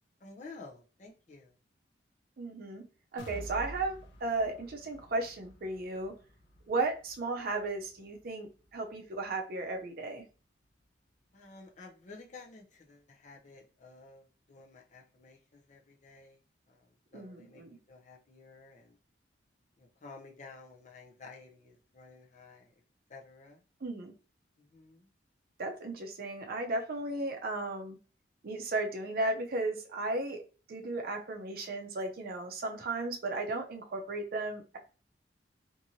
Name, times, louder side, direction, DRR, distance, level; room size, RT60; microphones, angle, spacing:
voice 1, 0.2-1.5 11.3-16.4 16.7-19.0 19.8-22.7 23.1-23.6 24.6-25.1, left 3 dB, 40° left, 0 dB, 0.6 m, -52 dB
voice 2, 2.4-2.9 3.1-6.1 6.7-10.2 17.1-17.8 23.8-24.1 25.6-28.0 28.4-30.4 30.7-34.8, right 2 dB, 55° right, 4 dB, 0.5 m, -35 dB
sound 1, 3.2-11.0 11.4-11.5 11.9-12.0, equal, 90° left, 0.6 m, -51 dB
2.9 x 2.6 x 2.6 m, 0.35 s
head